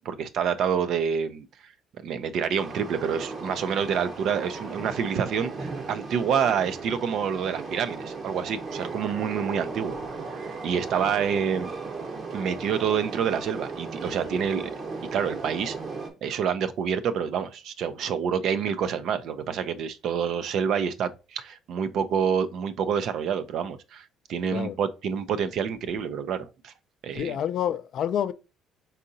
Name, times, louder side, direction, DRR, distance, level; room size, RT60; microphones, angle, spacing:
voice 1, 0.0-1.5 2.0-9.9 10.3-11.7 12.3-14.7 15.1-15.7 16.2-26.7 27.0-27.4, right 7 dB, 65° right, 0.5 m, -27 dB
Train, 2.6-16.1, right 4 dB, 45° right, 1.0 m, -36 dB
voice 2, 27.2-28.3, left 9 dB, 65° left, 0.4 m, -28 dB
4.0 x 3.7 x 2.6 m
supercardioid pair, 80°, 0 cm